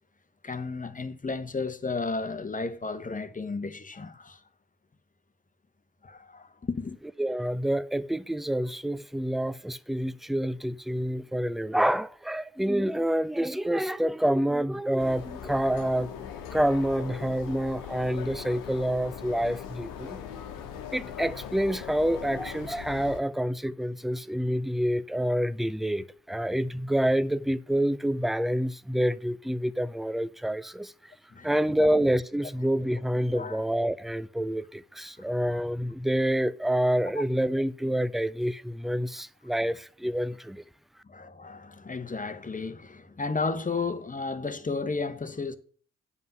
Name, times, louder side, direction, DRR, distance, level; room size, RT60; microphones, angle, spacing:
voice 1, 0.4-4.4 6.0-7.0 31.3-31.5 31.8-31.9 33.3-33.6 37.1-37.2 39.6-39.7 41.0-45.6, left 4 dB, 25° left, 1.2 m, -33 dB
voice 2, 7.2-16.1 16.5-20.2 20.9-30.9 31.4-40.6, right 1 dB, ahead, 0.5 m, -27 dB
sound 1, 15.0-23.2, left 8 dB, 75° left, 1.2 m, -40 dB
9.6 x 5.5 x 5.7 m
hypercardioid pair, 40°, 34 cm